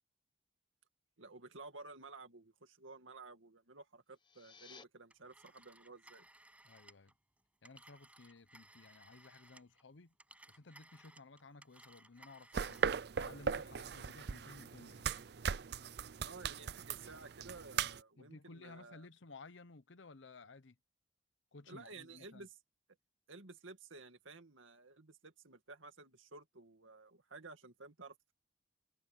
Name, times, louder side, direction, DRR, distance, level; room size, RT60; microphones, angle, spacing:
voice 1, 1.2-6.3 16.2-19.1 21.7-22.6 23.3-28.3, right 3 dB, 90° right, 2.3 m, -54 dB
sound 1, 4.0-4.8, left 5 dB, 25° left, 1.0 m, -57 dB
Telephone, 5.1-9.8 10.1-13.0, right 1 dB, 5° right, 6.2 m, -62 dB
voice 2, 6.6-7.1 7.6-10.1 10.5-12.8 13.2-15.1 18.2-20.8 21.5-22.5, left 3 dB, 75° left, 0.9 m, -56 dB
sound 2, 12.5-18.0, right 6 dB, 55° right, 0.5 m, -39 dB
head